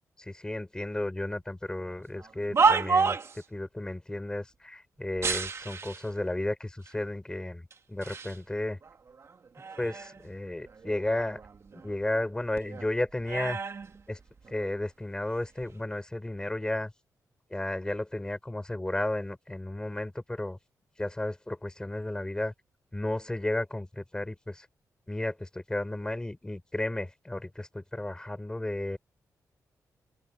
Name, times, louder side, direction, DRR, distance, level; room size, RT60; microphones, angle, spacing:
voice 1, 0.3-3.2 3.5-8.8 9.8-11.4 11.7-13.6 14.1-14.2 14.5-16.9 17.5-20.6 21.0-22.5 22.9-24.7 25.1-29.0, left 1 dB, 10° left, 6.1 m, -33 dB
sound 1, 2.1-3.4 5.2-6.1 6.9-7.0 7.7-8.4 8.8-10.3 10.6-12.3 12.6-14.7 15.4-15.7, right 5 dB, 45° right, 2.3 m, -30 dB
open air
cardioid pair, 105°, 6 cm